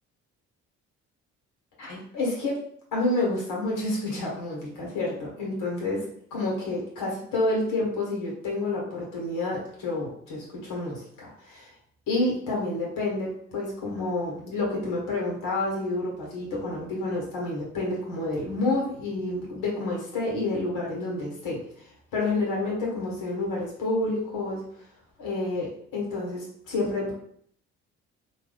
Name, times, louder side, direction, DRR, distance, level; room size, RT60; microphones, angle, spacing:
voice 1, 1.8-2.6 2.9-6.0 6.3-11.7 12.1-21.6 22.1-24.6 25.2-27.1, left 2 dB, 65° left, -3 dB, 1.3 m, -29 dB
3.0 x 2.3 x 3.4 m, 0.64 s
hypercardioid pair, 50°, 35 cm